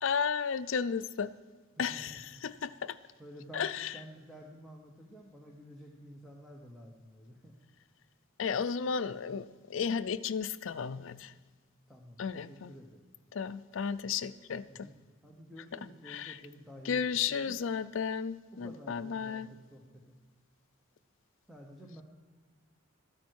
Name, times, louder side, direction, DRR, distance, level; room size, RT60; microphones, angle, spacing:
voice 1, 0.0-1.3 1.8-3.0 3.5-3.9 8.4-11.3 12.2-12.7 13.3-14.9 16.1-16.4 16.8-19.5, left 6 dB, 65° left, 13 dB, 0.4 m, -33 dB
voice 2, 1.8-2.4 3.2-7.6 11.9-13.0 14.6-14.9 15.2-17.6 18.5-20.1 21.5-22.0, equal, ahead, -1 dB, 1.0 m, -51 dB
13.0 x 9.5 x 4.6 m, 1.5 s
head